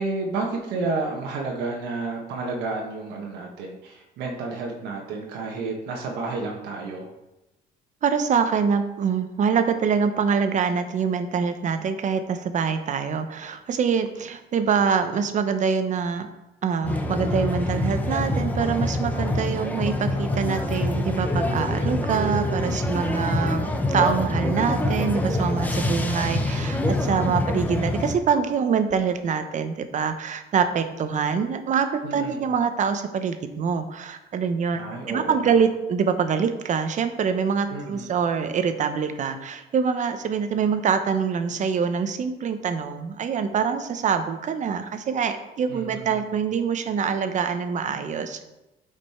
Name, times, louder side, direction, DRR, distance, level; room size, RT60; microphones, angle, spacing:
voice 1, 0.0-7.1 32.0-32.4 34.8-35.5 37.7-38.1 45.7-46.2, right 3 dB, 85° right, -1 dB, 1.4 m, -31 dB
voice 2, 8.0-16.3 16.6-34.8 35.1-48.4, right 6 dB, 45° right, 9 dB, 0.8 m, -25 dB
sound 1, 16.8-28.1, left 1 dB, 10° left, 0.9 m, -25 dB
8.4 x 5.2 x 4.4 m, 0.97 s
cardioid pair, 110°, 17 cm